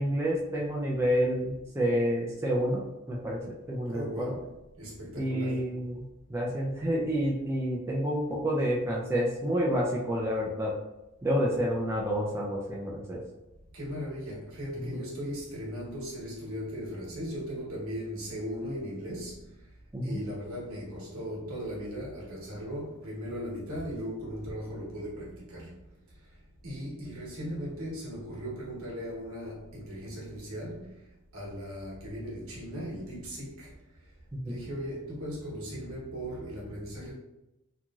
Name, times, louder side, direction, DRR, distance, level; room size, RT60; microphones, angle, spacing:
voice 1, 0.0-2.8 3.1-3.4 3.7-4.4 5.2-6.0 6.3-10.7 11.2-13.2 14.8-15.0 19.9-20.2 34.4-34.6, equal, 10° right, -4 dB, 0.3 m, -29 dB
voice 2, 3.9-4.5 4.8-5.7 13.7-19.7 20.0-25.7 26.1-26.4 26.6-31.1 31.3-33.7 34.4-37.1, equal, 70° right, -5 dB, 1.1 m, -38 dB
3.0 x 2.5 x 2.3 m, 0.94 s
head